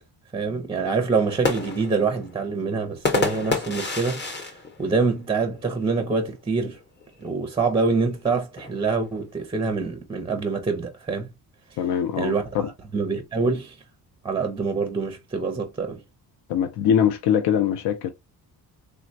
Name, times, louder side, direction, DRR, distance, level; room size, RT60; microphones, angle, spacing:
voice 1, 0.3-6.8 7.2-11.3 12.2-12.4 12.9-13.8 14.2-16.0, right 4 dB, 15° right, 0.4 m, -25 dB
sound 1, 1.1-5.8 6.2-6.3 6.6-7.0 7.9-9.4, left 3 dB, 25° left, 0.7 m, -30 dB
voice 2, 11.8-12.7 16.5-18.1, left 8 dB, 80° left, 0.6 m, -22 dB
3.4 x 2.1 x 2.6 m
cardioid pair, 130°, 39 cm